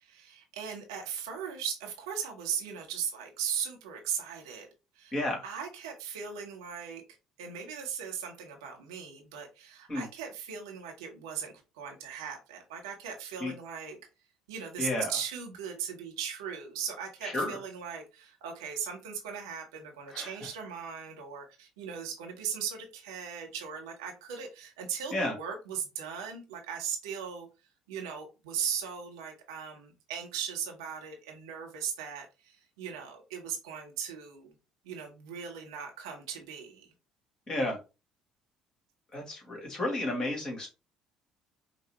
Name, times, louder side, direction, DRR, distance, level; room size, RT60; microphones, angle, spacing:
voice 1, 0.1-4.7 4.9-5.1 5.4-7.0 7.4-14.0 14.5-27.5 27.9-34.5 34.8-36.9, right 7 dB, 70° right, 2 dB, 1.0 m, -38 dB
voice 2, 5.1-5.5 9.9-10.0 13.4-13.5 14.8-15.1 17.2-17.6 20.1-20.3 25.1-25.4 37.5-37.8 39.1-40.7, left 1 dB, 30° left, 0 dB, 2.1 m, -32 dB
5.2 x 2.2 x 2.9 m, 0.28 s
figure-of-eight pair, 55°, 3 cm